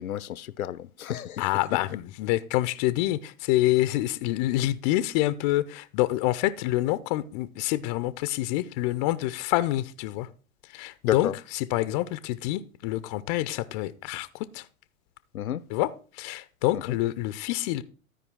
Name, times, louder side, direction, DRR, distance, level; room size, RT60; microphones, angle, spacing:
voice 1, 0.0-1.4 11.0-11.3 15.3-15.6, left 11 dB, 80° left, 0.6 m, -30 dB
voice 2, 1.4-10.3 10.6-14.7 15.7-17.8, left 16 dB, 30° left, 0.5 m, -27 dB
12.5 x 5.0 x 4.6 m
figure-of-eight pair, 100°, 42 cm